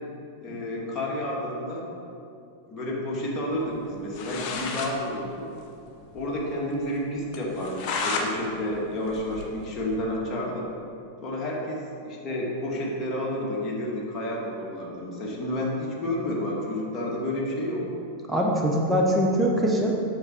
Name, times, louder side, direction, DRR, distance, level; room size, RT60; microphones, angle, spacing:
voice 1, 0.4-1.9 2.7-5.4 6.1-10.7 11.2-17.9, left 1 dB, 25° left, -4 dB, 1.9 m, -30 dB
sound 1, 3.9-4.9 5.3-5.4 5.6-5.7 6.1-6.2 6.6-6.7 7.3-8.3 8.7-10.0, left 4 dB, 40° left, 1.0 m, -32 dB
voice 2, 18.3-20.0, equal, 5° right, -2 dB, 1.0 m, -23 dB
8.0 x 6.7 x 4.4 m, 2.5 s
figure-of-eight pair, 90°, 0 cm